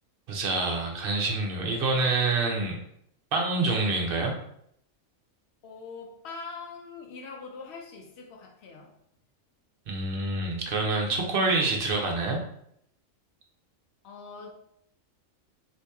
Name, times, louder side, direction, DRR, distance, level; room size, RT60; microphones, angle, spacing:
voice 1, 0.3-2.8 3.3-4.3 9.9-12.4, right 3 dB, 55° right, 1 dB, 0.7 m, -26 dB
voice 2, 5.6-8.9 14.0-14.5, left 4 dB, 60° left, 1 dB, 0.9 m, -42 dB
2.8 x 2.8 x 3.4 m, 0.70 s
omnidirectional pair, 1.4 m